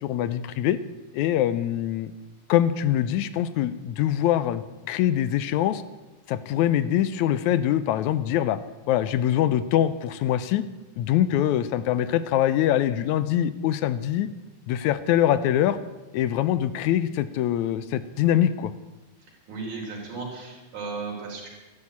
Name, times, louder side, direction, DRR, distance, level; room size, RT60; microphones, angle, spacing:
voice 1, 0.0-0.8 1.1-2.1 2.5-5.8 6.3-8.6 8.9-10.7 11.0-14.3 14.7-15.8 16.1-18.7, left 11 dB, 80° left, 14 dB, 2.0 m, -23 dB
voice 2, 19.5-21.5, right 4 dB, 70° right, -2 dB, 5.0 m, -35 dB
13.5 x 11.0 x 8.4 m, 1.1 s
omnidirectional pair, 3.5 m